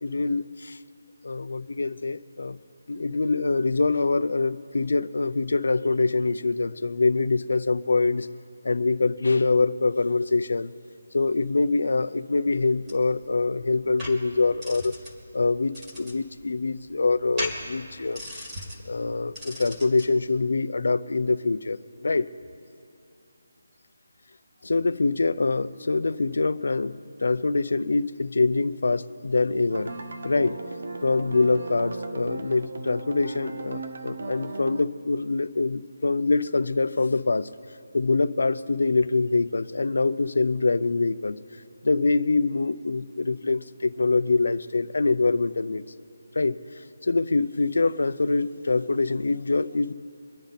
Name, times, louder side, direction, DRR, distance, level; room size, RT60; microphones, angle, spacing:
voice 1, 0.0-0.8 1.2-2.6 2.9-8.3 8.6-10.7 11.1-14.9 15.3-18.5 18.8-22.3 24.6-29.9 30.2-30.6 31.0-37.5 37.9-41.4 41.8-45.8 46.3-46.6 47.0-49.9, left 3 dB, 65° left, 14 dB, 0.6 m, -24 dB
sound 1, 12.6-20.1, left 1 dB, 15° right, 1.8 m, -39 dB
sound 2, 29.7-34.8, right 2 dB, 55° right, 0.7 m, -36 dB
24.5 x 10.0 x 4.1 m, 2.5 s
hypercardioid pair, 175°, 0 cm